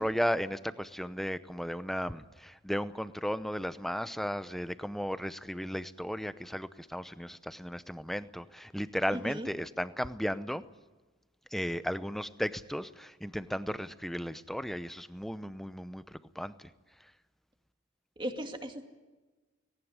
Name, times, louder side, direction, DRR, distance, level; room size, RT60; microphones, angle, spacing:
voice 1, 0.0-10.6 11.5-16.7 17.0-17.1, equal, ahead, 13 dB, 0.7 m, -35 dB
voice 2, 9.1-9.5 18.2-18.8, equal, 25° right, 5 dB, 2.2 m, -37 dB
19.0 x 18.5 x 9.7 m, 1.3 s
head